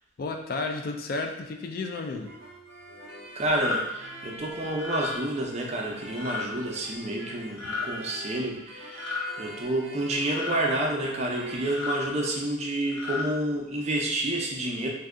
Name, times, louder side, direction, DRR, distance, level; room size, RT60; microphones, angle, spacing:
voice 1, 0.2-2.3, left 3 dB, 50° left, 4 dB, 0.3 m, -32 dB
sound 1, 1.9-11.8, right 1 dB, 70° right, 0.7 m, -43 dB
voice 2, 3.3-9.1 9.4-14.9, right 1 dB, 35° right, -1 dB, 0.5 m, -29 dB
sound 2, 3.5-3.8 4.7-5.1 6.2-6.5 7.5-7.9 8.9-9.3 10.3-10.6 11.6-12.0 12.8-13.3, left 5 dB, 85° left, 1.0 m, -33 dB
2.6 x 2.3 x 3.5 m, 0.90 s
head